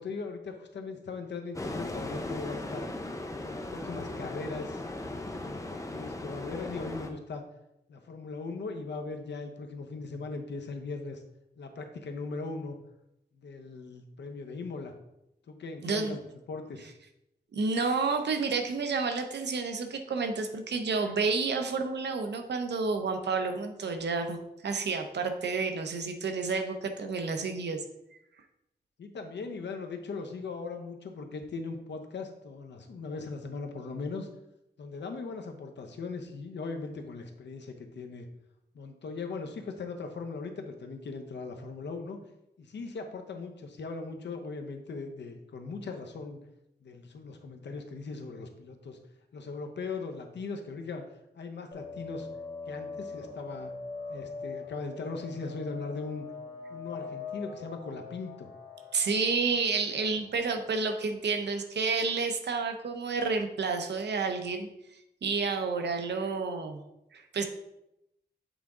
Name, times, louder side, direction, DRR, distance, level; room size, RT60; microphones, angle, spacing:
voice 1, 0.0-2.9 3.4-7.4 7.9-11.2 11.6-12.8 13.3-14.9 15.5-16.2 16.5-16.9 29.0-34.3 34.8-38.3 38.7-42.2 42.6-46.4 46.8-49.0 49.3-51.0 51.3-52.3 52.7-53.7 54.1-56.3 56.7-58.5, left 4 dB, 80° left, 5 dB, 0.8 m, -39 dB
sound 1, 1.5-7.1, left 2 dB, 20° left, 0.7 m, -37 dB
voice 2, 15.8-16.2 17.5-24.4 24.6-27.8 58.9-66.8 67.1-67.4, right 4 dB, 75° right, 5 dB, 0.8 m, -30 dB
sound 2, 51.7-61.0, left 4 dB, 60° left, 1.7 m, -43 dB
8.1 x 3.6 x 3.8 m, 0.85 s
wide cardioid pair, 115°, 18 cm